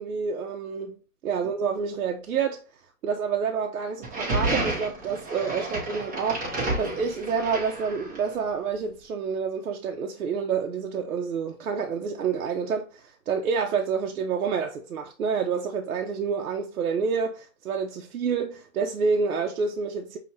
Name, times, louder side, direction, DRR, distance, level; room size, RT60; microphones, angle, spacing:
voice 1, 0.0-2.6 3.0-20.2, right 6 dB, 80° right, 0.7 m, -28 dB
sound 1, 4.0-8.3, right 2 dB, 10° right, 0.5 m, -30 dB
5.7 x 2.8 x 2.7 m
hypercardioid pair, 150°, 44 cm